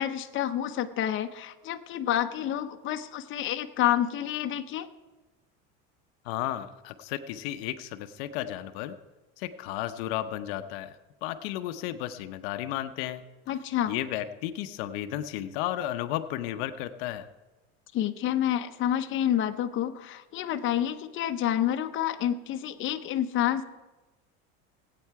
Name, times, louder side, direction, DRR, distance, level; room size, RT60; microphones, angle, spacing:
voice 1, 0.0-4.9 13.5-13.9 17.9-23.6, left 11 dB, 40° left, 7 dB, 0.8 m, -28 dB
voice 2, 6.2-9.0 9.4-13.2 13.9-17.3, left 12 dB, 80° left, 9 dB, 0.8 m, -33 dB
18.5 x 8.6 x 4.7 m, 1.2 s
supercardioid pair, 125°, 30 cm